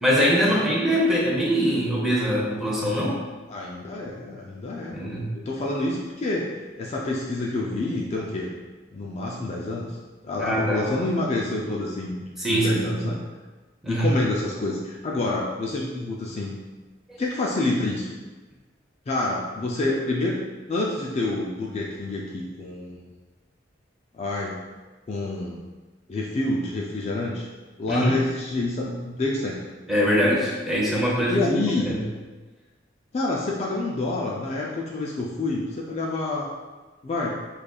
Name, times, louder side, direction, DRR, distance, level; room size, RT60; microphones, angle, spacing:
voice 1, 0.0-3.2 4.9-5.3 10.4-10.9 12.4-13.1 13.8-14.1 27.9-28.2 29.9-31.4 31.8-32.0, equal, ahead, -5 dB, 0.7 m, -23 dB
voice 2, 3.5-5.0 5.3-8.5 8.9-9.9 10.2-13.2 13.9-16.6 17.2-18.2 19.1-20.4 20.7-23.1 24.1-24.6 25.1-25.6 26.1-27.5 27.8-29.6 31.3-31.9 33.1-36.5 37.0-37.3, left 2 dB, 35° left, -3 dB, 0.3 m, -28 dB
5.1 x 2.4 x 2.3 m, 1.3 s
head